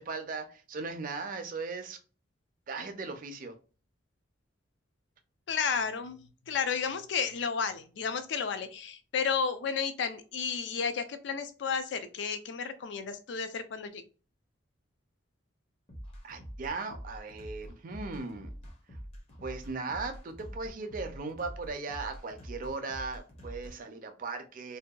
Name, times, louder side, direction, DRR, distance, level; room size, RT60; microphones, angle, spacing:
voice 1, 0.0-2.0 2.7-3.5 16.2-18.5 19.4-24.8, right 4 dB, 45° right, 7 dB, 0.4 m, -38 dB
voice 2, 5.5-6.2 6.5-14.0, left 6 dB, 65° left, 10 dB, 0.4 m, -32 dB
sound 1, 15.9-23.7, equal, 35° left, 0.7 m, -45 dB
2.6 x 2.2 x 2.2 m, 0.36 s
head